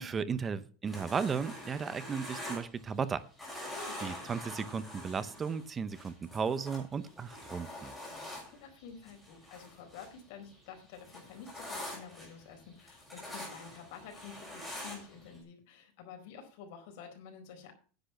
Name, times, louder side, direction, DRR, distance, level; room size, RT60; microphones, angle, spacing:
voice 1, 0.0-3.2 3.5-3.7 4.0-7.9, right 6 dB, 20° right, 15 dB, 0.7 m, -35 dB
sound 1, 0.9-3.1 3.4-10.2 10.5-15.4, left 1 dB, ahead, 6.2 m, -45 dB
voice 2, 8.1-17.7, left 6 dB, 60° left, 4 dB, 4.5 m, -50 dB
10.0 x 8.7 x 5.7 m, 0.39 s
supercardioid pair, 165°, 0 cm